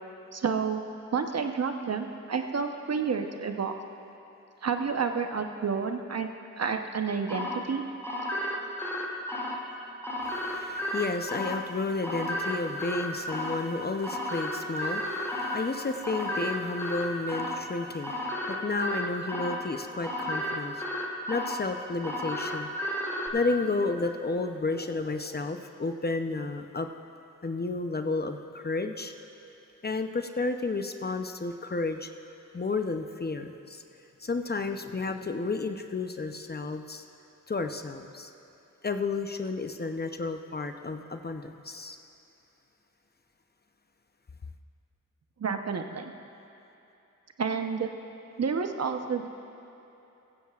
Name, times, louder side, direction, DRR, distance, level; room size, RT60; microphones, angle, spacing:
voice 1, 0.3-0.8 1.1-3.7 4.6-6.3 6.6-7.8 45.4-46.1 47.4-47.9 48.4-49.3, right 5 dB, 50° right, 6 dB, 1.0 m, -30 dB
sound 1, 7.3-23.3, left 1 dB, 10° left, 2.4 m, -33 dB
voice 2, 10.2-20.8 21.3-22.7 23.3-26.9 27.4-29.1 29.8-32.1 32.5-33.8 34.2-37.0 37.5-38.3 38.8-42.0, left 3 dB, 30° left, 6 dB, 0.8 m, -32 dB
16.0 x 14.5 x 2.5 m, 3.0 s
supercardioid pair, 45°, 33 cm